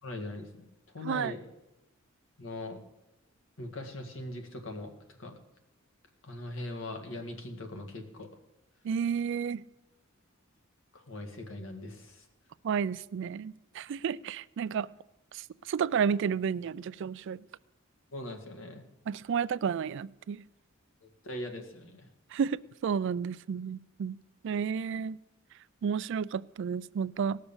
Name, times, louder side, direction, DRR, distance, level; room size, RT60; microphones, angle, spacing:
voice 1, 0.0-0.7 0.9-1.4 2.4-2.8 3.6-4.9 5.2-5.3 6.2-8.3 10.9-12.3 18.1-18.8 21.0-22.1, left 1 dB, 70° left, 4 dB, 1.9 m, -40 dB
voice 2, 8.8-9.6 12.6-14.9 15.3-17.4 19.1-20.4 22.3-24.2 24.4-25.2 25.8-27.4, right 7 dB, 60° right, 19 dB, 0.3 m, -31 dB
18.0 x 6.6 x 7.1 m, 0.97 s
head